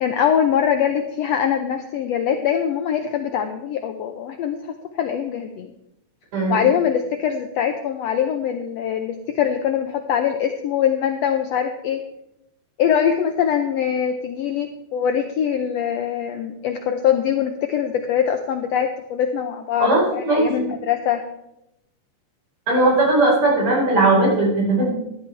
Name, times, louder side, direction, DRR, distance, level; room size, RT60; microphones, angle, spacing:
voice 1, 0.0-5.7 6.5-12.0 12.8-21.2, left 8 dB, 85° left, 6 dB, 1.4 m, -23 dB
voice 2, 6.3-6.7 19.8-20.5 22.7-24.9, right 2 dB, 55° right, -3 dB, 5.8 m, -18 dB
13.5 x 12.0 x 3.4 m, 0.82 s
omnidirectional pair, 3.8 m